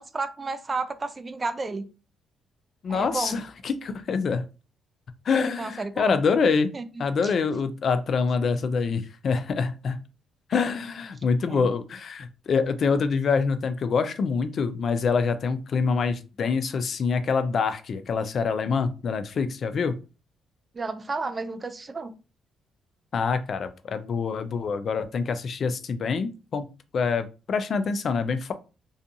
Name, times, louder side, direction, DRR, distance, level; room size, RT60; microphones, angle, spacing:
voice 1, 0.0-1.9 2.9-3.4 5.6-6.2 6.7-6.9 7.2-7.3 11.5-11.7 20.7-22.1, right 3 dB, 30° right, 12 dB, 0.3 m, -31 dB
voice 2, 2.8-4.4 5.3-6.7 7.0-10.0 10.5-19.9 23.1-26.7 26.9-28.5, left 5 dB, 55° left, 11 dB, 0.3 m, -25 dB
2.5 x 2.3 x 2.6 m, 0.33 s
cardioid pair, 90°, 0 cm